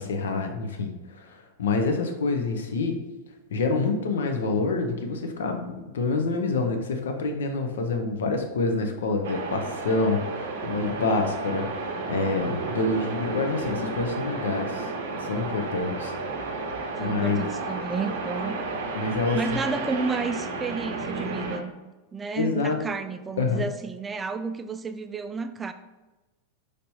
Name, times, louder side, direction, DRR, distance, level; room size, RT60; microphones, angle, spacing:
voice 1, 0.1-3.0 3.5-14.9 15.2-16.1 17.0-17.4 19.0-19.6 22.4-22.8 23.4-23.6, left 3 dB, 65° left, 5 dB, 0.6 m, -27 dB
sound 1, 9.2-21.6, right 3 dB, 55° right, 0.6 m, -32 dB
voice 2, 17.0-18.6 19.3-21.7 22.1-25.7, right 4 dB, 15° right, 9 dB, 0.3 m, -31 dB
5.2 x 3.3 x 2.7 m, 1.1 s
figure-of-eight pair, 90°, 0 cm